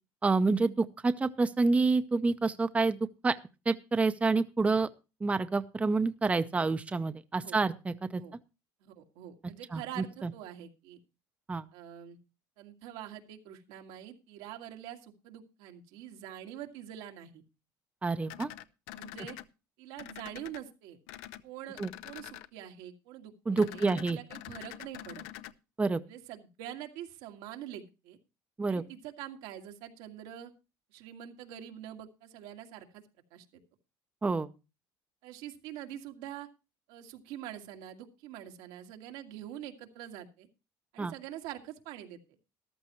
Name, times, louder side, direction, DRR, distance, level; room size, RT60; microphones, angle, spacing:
voice 1, 0.2-3.0 3.2-3.4 3.7-4.9 5.2-8.2 9.7-9.8 10.2-10.3 11.5-11.7 18.0-18.5 21.8-21.9 23.5-24.2 25.8-26.0 28.6-28.8 34.2-34.5 41.0-41.1, right 3 dB, 15° right, 11 dB, 0.6 m, -28 dB
voice 2, 8.8-11.0 11.7-12.2 12.6-17.4 18.9-19.4 19.8-21.0 21.4-25.2 26.1-28.2 28.7-30.5 30.9-33.0 33.3-33.5 35.2-36.5 36.9-40.5 40.9-42.4, right 11 dB, 85° right, 4 dB, 1.9 m, -45 dB
sound 1, 18.3-19.4 20.0-20.6 21.1-21.4 21.7-22.5 23.6-25.5, left 14 dB, 85° left, 0.7 m, -45 dB
14.0 x 12.0 x 3.0 m, 0.29 s
cardioid pair, 115°, 9 cm